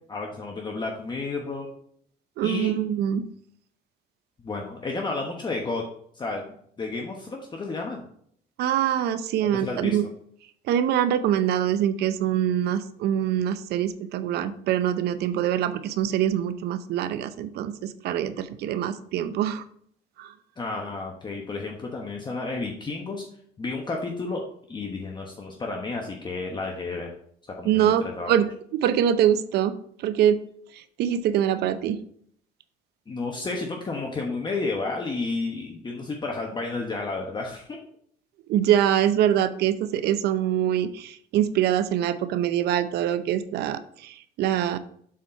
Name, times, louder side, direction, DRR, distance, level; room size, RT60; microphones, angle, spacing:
voice 1, 0.1-1.7 2.4-2.7 4.4-5.8 6.1-8.0 9.4-10.0 20.6-23.2 23.6-24.4 24.7-27.1 27.6-28.3 33.1-37.8, left 3 dB, 25° left, 1 dB, 1.1 m, -31 dB
voice 2, 2.4-3.2 8.6-10.0 10.7-19.6 20.2-20.3 27.6-28.5 28.7-29.7 30.0-30.4 30.7-32.0 38.5-44.8, right 10 dB, 75° right, 13 dB, 0.6 m, -24 dB
7.4 x 4.3 x 4.3 m, 0.64 s
cardioid pair, 110°, 17 cm